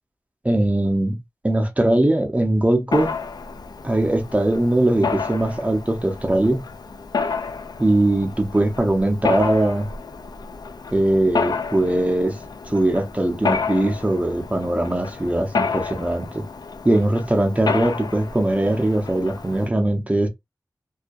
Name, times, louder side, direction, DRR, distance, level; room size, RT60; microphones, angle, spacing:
voice 1, 0.4-3.1 3.8-6.6 7.8-9.9 10.9-12.4 12.7-16.4 16.8-20.3, right 1 dB, 20° right, 0.6 m, -20 dB
Mechanisms, 2.9-19.7, left 5 dB, 70° left, 0.4 m, -30 dB
2.3 x 2.2 x 2.5 m
wide cardioid pair, 80°, 7 cm